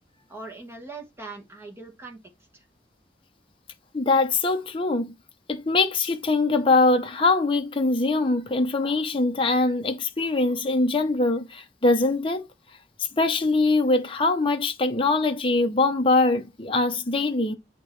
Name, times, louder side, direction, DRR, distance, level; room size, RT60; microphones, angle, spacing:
voice 1, 0.3-2.2 2.5-2.6, right 3 dB, 15° right, 1.4 m, -41 dB
voice 2, 3.9-5.1 5.5-12.5 13.1-17.5, left 3 dB, 30° left, 0.7 m, -22 dB
8.4 x 2.9 x 4.5 m
head